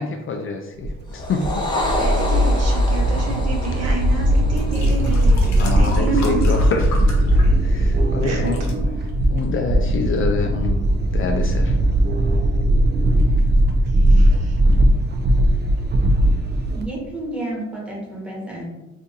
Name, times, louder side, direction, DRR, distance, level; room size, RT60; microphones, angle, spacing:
voice 1, 0.0-1.4 5.6-7.1 7.6-8.6 9.3-10.8 11.1-11.8, left 4 dB, 45° left, 4 dB, 0.4 m, -26 dB
sound 1, 0.8-16.8, right 1 dB, 35° right, 0.4 m, -18 dB
sound 2, 1.1-5.7, left 1 dB, 15° left, 0.7 m, -28 dB
voice 2, 2.0-6.4 8.2-8.9 13.9-14.6, right 3 dB, 60° right, -1 dB, 1.0 m, -31 dB
sound 3, 4.5-8.0 8.3-8.7 9.4-9.5, left 2 dB, 65° left, 0.9 m, -36 dB
voice 3, 6.1-6.4 16.7-18.7, right 3 dB, 5° right, -3 dB, 1.2 m, -27 dB
2.7 x 2.6 x 3.6 m, 1.0 s
cardioid pair, 90°, 30 cm